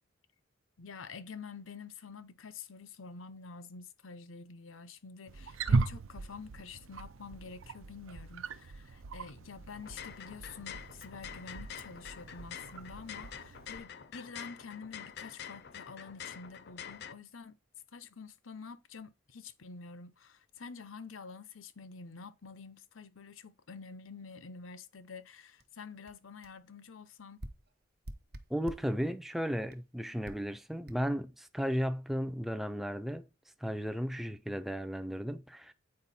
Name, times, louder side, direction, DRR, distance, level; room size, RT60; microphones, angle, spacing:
voice 1, 0.8-17.5 17.9-27.4, left 5 dB, 85° left, 0.8 m, -48 dB
Wild animals, 5.3-13.8, right 4 dB, 80° right, 0.5 m, -38 dB
sound 1, 9.7-17.1, left 8 dB, 55° left, 0.6 m, -47 dB
sound 2, 25.6-25.7 26.1-26.2 26.4-26.6 27.4-29.0 29.7-29.8 30.2-30.5 30.9-31.0, right 1 dB, 50° right, 1.0 m, -47 dB
voice 2, 28.5-33.3 33.6-35.7, equal, ahead, 0.4 m, -35 dB
8.7 x 4.8 x 4.2 m
head